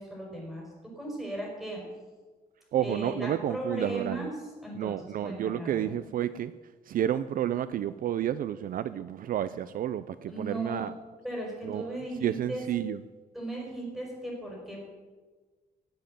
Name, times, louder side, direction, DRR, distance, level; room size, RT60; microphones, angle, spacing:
voice 1, 0.0-1.8 2.8-4.3 4.6-5.9 10.3-10.8 11.2-12.6 13.3-14.9, right 1 dB, ahead, -2 dB, 5.2 m, -37 dB
voice 2, 2.7-4.3 4.7-6.5 6.9-10.9 11.6-13.0, right 11 dB, 55° right, 14 dB, 0.5 m, -31 dB
18.0 x 7.5 x 9.1 m, 1.3 s
wide cardioid pair, 175°, 17 cm